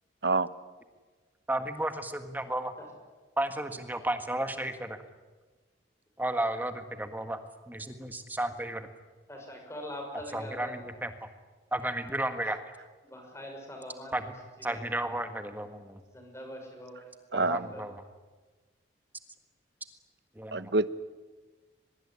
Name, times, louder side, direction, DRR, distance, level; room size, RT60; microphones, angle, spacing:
voice 1, 1.5-2.7 3.4-5.0 6.2-7.4 7.7-8.9 10.3-11.1 11.7-12.6 14.1-14.3 14.6-16.0 17.3-18.0 20.3-20.7, right 1 dB, 10° right, 8 dB, 1.6 m, -33 dB
voice 2, 9.3-10.8 13.0-14.1 14.6-14.8 16.1-17.1 17.5-17.9, equal, 15° left, 2 dB, 6.1 m, -43 dB
voice 3, 17.3-17.7 20.5-20.9, right 3 dB, 60° right, 14 dB, 0.9 m, -26 dB
23.5 x 21.5 x 10.0 m, 1.3 s
head